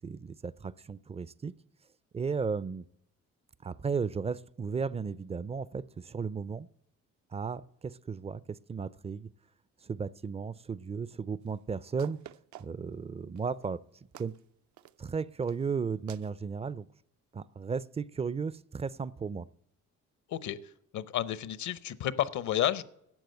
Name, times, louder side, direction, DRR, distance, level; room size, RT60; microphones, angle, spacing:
voice 1, 0.0-1.5 2.1-2.8 3.6-6.7 7.3-9.3 9.8-12.2 12.6-13.8 14.2-14.3 15.0-16.9 17.3-19.5, right 5 dB, 20° right, 0.4 m, -35 dB
sound 1, 11.5-11.6 12.0-12.9 13.4-13.7 14.1-14.4 14.8-15.1 15.4-15.7 16.1-16.4, right 11 dB, 70° right, 0.6 m, -51 dB
voice 2, 20.9-22.8, left 11 dB, 70° left, 0.8 m, -31 dB
12.0 x 7.6 x 7.8 m
cardioid pair, 90°, 30 cm